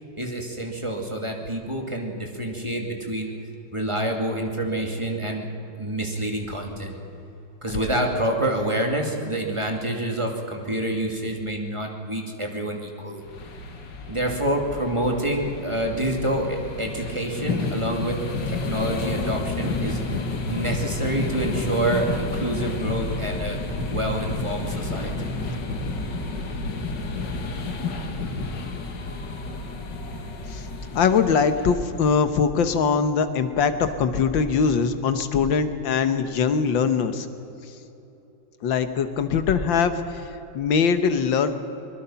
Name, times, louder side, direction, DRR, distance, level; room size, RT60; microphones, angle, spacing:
voice 1, 0.2-3.3 3.7-5.5 5.8-6.9 7.6-13.2 14.1-18.2 18.5-20.0 20.5-23.6 23.9-25.1, right 1 dB, 15° right, 1 dB, 2.6 m, -27 dB
sound 1, 13.2-32.3, left 3 dB, 70° left, 2.4 m, -30 dB
voice 2, 30.9-37.3 38.6-40.3 40.5-41.6, left 6 dB, 85° left, 9 dB, 1.9 m, -22 dB
24.0 x 22.0 x 5.8 m, 3.0 s
omnidirectional pair, 2.0 m